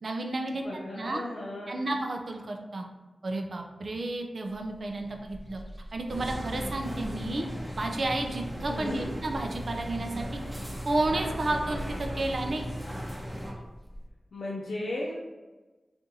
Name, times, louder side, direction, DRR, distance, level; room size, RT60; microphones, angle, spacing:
voice 1, 0.0-0.6 0.9-1.2 1.7-2.8 3.2-5.6 5.9-7.5 7.8-10.4 10.8-12.6, right 2 dB, 65° right, 3 dB, 0.4 m, -31 dB
voice 2, 0.6-1.9 8.7-9.1 14.3-15.1, left 1 dB, 90° left, -5 dB, 0.5 m, -35 dB
sound 1, 4.5-14.1, equal, 30° left, 0.5 m, -46 dB
sound 2, 6.1-13.5, equal, 15° right, 0.8 m, -37 dB
3.7 x 2.5 x 2.7 m, 1.2 s
cardioid pair, 60°, 0 cm